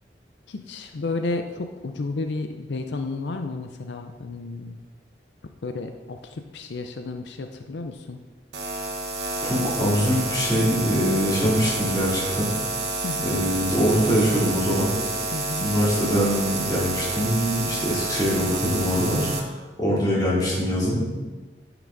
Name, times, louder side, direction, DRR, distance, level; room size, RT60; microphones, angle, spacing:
voice 1, 0.5-4.8 5.6-8.2 13.0-13.3 15.3-15.7 20.0-20.1, left 3 dB, 85° left, 6 dB, 0.5 m, -32 dB
sound 1, 8.5-19.4, right 2 dB, 80° right, 1.0 m, -29 dB
voice 2, 9.4-12.5 13.2-14.9 15.6-19.5 19.8-21.0, equal, 20° left, -7 dB, 2.9 m, -23 dB
9.9 x 6.0 x 4.0 m, 1.3 s
head